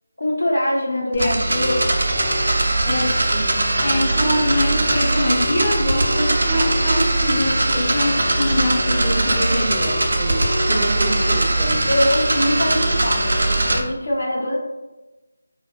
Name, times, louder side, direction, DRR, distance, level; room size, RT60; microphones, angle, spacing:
voice 1, 0.2-1.8 11.9-14.6, left 1 dB, 85° left, -3 dB, 0.8 m, -23 dB
voice 2, 1.1-1.5 2.8-11.9, left 1 dB, 25° left, -5 dB, 0.5 m, -24 dB
sound 1, 1.1-13.8, right 2 dB, 70° right, 0.4 m, -20 dB
2.5 x 2.1 x 2.3 m, 1.1 s
figure-of-eight pair, 160°, 0 cm